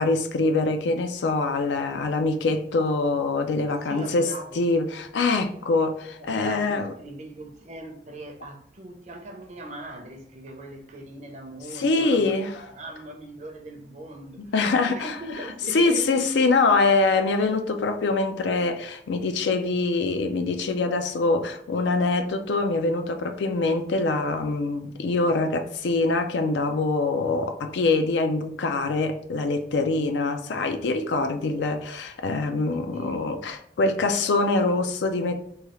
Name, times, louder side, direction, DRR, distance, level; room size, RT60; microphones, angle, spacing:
voice 1, 0.0-4.3 4.6-6.9 11.7-12.6 14.5-15.2 15.7-35.4, left 3 dB, 85° left, 0.4 m, -24 dB
voice 2, 3.7-4.6 6.1-12.4 12.6-14.5 14.9-16.3 32.7-33.3, right 1 dB, 40° right, 0.5 m, -40 dB
3.1 x 2.3 x 2.9 m
head